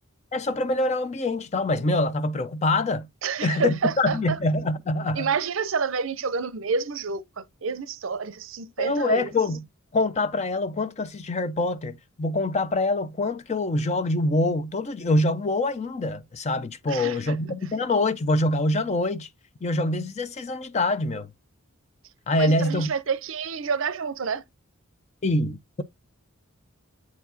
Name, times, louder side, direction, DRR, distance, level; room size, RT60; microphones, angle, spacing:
voice 1, 0.3-3.1 3.4-5.3 8.8-9.6 9.9-19.3 19.6-21.3 22.3-22.9 25.2-25.8, left 2 dB, 30° left, 0.4 m, -25 dB
voice 2, 3.2-4.4 5.1-9.3 16.9-17.4 22.4-24.4, right 5 dB, 60° right, 0.6 m, -28 dB
8.2 x 4.6 x 2.6 m
head